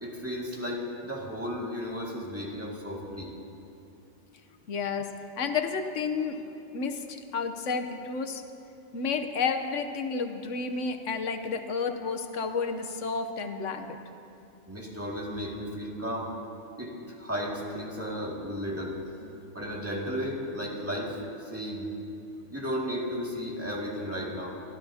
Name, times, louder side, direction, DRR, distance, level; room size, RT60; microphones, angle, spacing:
voice 1, 0.0-3.3 14.7-16.3 16.8-19.0 19.5-21.9 22.5-24.6, equal, 10° right, -4 dB, 2.2 m, -34 dB
voice 2, 4.7-6.4 6.7-8.4 8.9-14.0 19.2-19.5, left 5 dB, 80° left, 7 dB, 1.3 m, -31 dB
23.5 x 15.0 x 2.8 m, 2.8 s
omnidirectional pair, 1.2 m